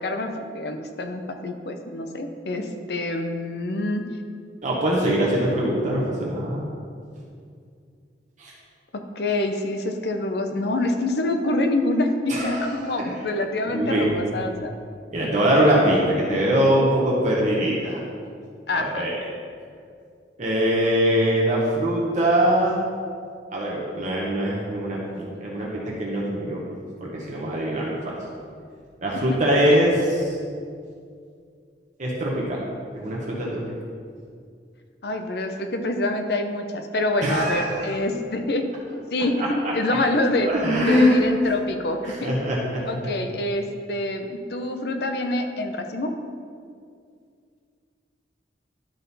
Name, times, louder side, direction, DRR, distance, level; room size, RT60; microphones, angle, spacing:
voice 1, 0.0-4.1 8.9-14.7 18.7-19.1 35.0-38.7 39.1-40.5 40.9-42.3 42.8-46.1, left 2 dB, 65° left, 6 dB, 0.6 m, -26 dB
voice 2, 4.6-6.7 8.4-8.5 12.3-12.8 13.1-13.2 13.7-14.1 15.1-18.0 18.7-19.2 20.4-22.8 23.5-26.6 27.0-28.1 29.0-30.4 32.0-32.6 32.9-33.6 37.2-37.9 39.2-40.0 40.5-41.2 42.0-42.8, equal, 45° right, -4 dB, 1.0 m, -22 dB
11.5 x 3.8 x 4.1 m, 2.3 s
head